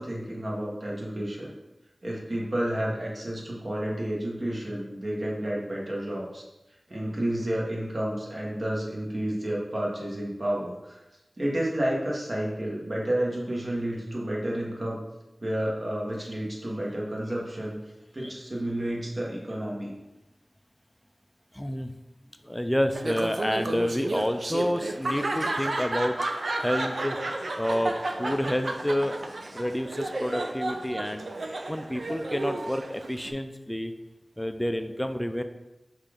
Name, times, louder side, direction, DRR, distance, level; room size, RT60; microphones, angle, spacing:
voice 1, 0.0-1.5 2.0-6.4 6.9-11.0 11.4-15.0 15.4-17.8 18.1-19.9, right 1 dB, 50° right, -3 dB, 1.2 m, -30 dB
voice 2, 21.5-21.9 22.4-26.1 26.6-27.2 27.6-27.9 28.2-29.1 29.5-31.3 31.7-33.9 34.4-35.4, equal, 10° left, 8 dB, 0.3 m, -29 dB
Laughter, 22.9-33.3, right 2 dB, 75° right, 0.4 m, -32 dB
5.6 x 2.5 x 3.4 m, 0.99 s
wide cardioid pair, 45°, 0 cm